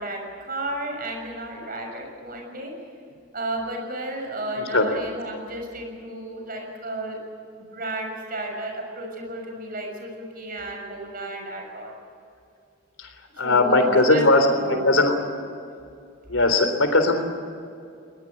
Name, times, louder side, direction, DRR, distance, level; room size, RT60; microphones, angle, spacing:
voice 1, 0.0-2.7 3.3-7.2 7.6-11.9 13.3-14.9, right 1 dB, 45° right, 2 dB, 6.5 m, -33 dB
voice 2, 4.6-4.9 13.0-13.1 13.4-15.1 16.3-17.2, left 2 dB, 90° left, 7 dB, 3.7 m, -19 dB
21.5 x 20.5 x 8.8 m, 2.5 s
head